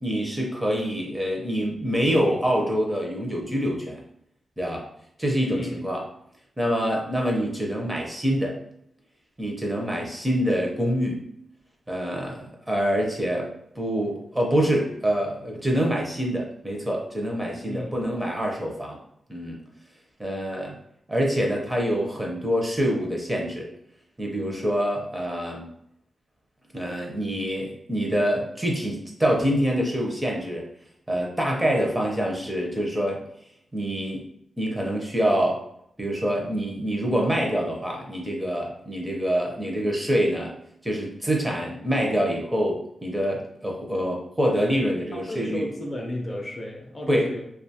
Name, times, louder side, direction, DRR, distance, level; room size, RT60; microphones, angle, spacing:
voice 1, 0.0-4.0 4.6-4.8 5.2-6.0 6.6-8.5 9.4-11.2 11.9-13.5 13.8-19.0 19.3-19.6 20.2-20.8 21.1-23.7 24.2-25.6 26.7-30.6 31.1-33.2 33.7-34.2 34.6-35.6 36.0-40.5 40.8-45.6 47.1-47.3, equal, 15° right, -1 dB, 0.6 m, -25 dB
voice 2, 17.6-18.0 45.1-47.4, left 1 dB, 30° left, 0 dB, 0.5 m, -33 dB
2.4 x 2.3 x 2.8 m, 0.73 s
wide cardioid pair, 105°, 0 cm